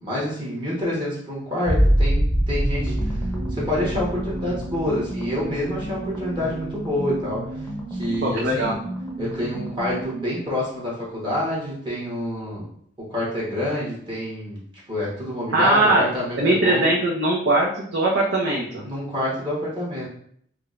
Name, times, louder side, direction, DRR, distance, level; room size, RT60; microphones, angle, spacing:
voice 1, 0.0-3.2 3.5-8.8 9.2-12.6 13.0-14.6 14.9-16.9 18.8-20.0, left 1 dB, 25° right, -7 dB, 1.1 m, -27 dB
sound 1, 1.6-7.1 7.6-8.2, equal, 55° right, 1.2 m, -25 dB
sound 2, 2.6-10.3, right 1 dB, 15° left, 0.7 m, -33 dB
voice 2, 8.2-8.8 15.5-16.1 16.4-18.8, right 2 dB, 80° right, -3 dB, 0.6 m, -20 dB
4.7 x 2.2 x 2.5 m, 0.65 s
head